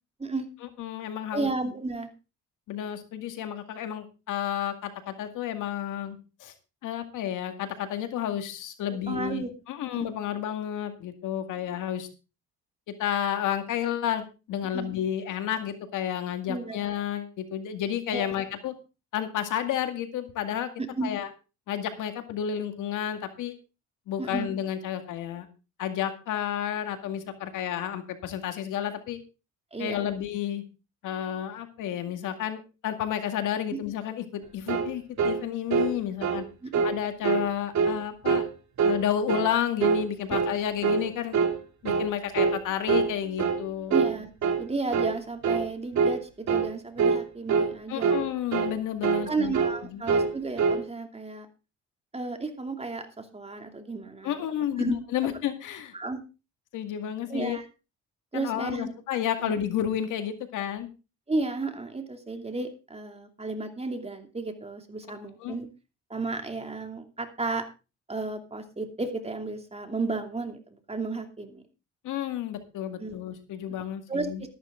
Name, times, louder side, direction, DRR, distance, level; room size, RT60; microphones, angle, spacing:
voice 1, 0.8-1.5 2.7-6.5 6.8-12.1 13.0-18.7 19.1-20.7 21.0-21.3 21.7-23.5 24.1-25.5 25.8-29.2 29.8-30.6 31.0-36.4 36.8-38.4 38.8-41.4 41.8-43.9 47.9-49.5 49.9-50.0 54.2-55.9 56.7-57.6 58.3-60.9 65.4-65.6 72.0-74.4, left 10 dB, 85° left, 7 dB, 2.1 m, -31 dB
voice 2, 1.3-2.1 9.1-9.5 9.9-10.1 14.7-14.9 16.5-16.8 18.1-18.3 20.9-21.1 24.2-24.5 29.7-30.1 33.7-33.8 36.6-36.8 43.9-44.3 44.6-48.2 49.2-51.5 52.1-54.4 54.8-55.0 55.9-56.2 57.3-57.7 58.3-58.9 59.4-59.5 61.3-65.7 66.1-67.7 68.1-71.6 73.0-73.2 74.1-74.5, right 3 dB, 20° right, 6 dB, 2.7 m, -33 dB
sound 1, 34.7-34.9 35.2-35.4 35.7-35.9 36.2-36.4 36.7-37.0 37.2-37.5 37.7-38.0 38.2-38.5 38.8-39.0 39.3-39.5 39.8-40.0 40.3-40.5 40.8-41.1 41.3-41.6 41.8-42.1 42.3-42.6 42.9-43.1 43.4-43.6 43.9-44.1 44.4-44.6 44.9-45.1 45.4-45.7 45.9-46.2 46.5-46.7 47.0-47.2 47.5-47.7 48.0-48.2 48.5-48.7 49.0-49.3 49.5-49.8 50.1-50.3 50.6-50.8, right 5 dB, 65° right, 2.6 m, -24 dB
13.5 x 12.0 x 3.8 m, 0.31 s
cardioid pair, 90°, 30 cm